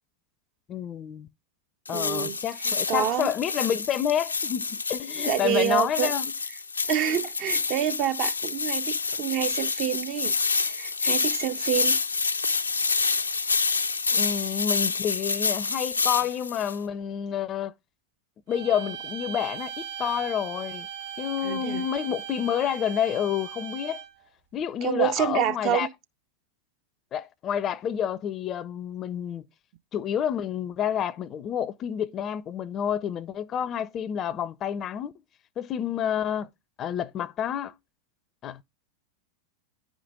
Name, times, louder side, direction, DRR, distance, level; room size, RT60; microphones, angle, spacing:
voice 1, 0.7-1.3 1.9-6.3 14.2-17.7 18.5-20.9 21.2-24.0 24.5-25.9 27.1-29.4 29.9-35.1 35.6-36.5 36.8-37.7 38.4-38.6, left 9 dB, 30° left, 0.5 m, -29 dB
sound 1, 1.9-16.8, left 4 dB, 80° left, 0.6 m, -28 dB
voice 2, 1.9-3.3 5.2-6.1 6.9-12.0 14.1-14.2 21.4-21.9 24.8-25.9, right 10 dB, 40° right, 0.6 m, -28 dB
sound 2, 18.5-24.2, right 9 dB, 60° right, 2.2 m, -38 dB
9.8 x 5.1 x 3.5 m
figure-of-eight pair, 90°, 0 cm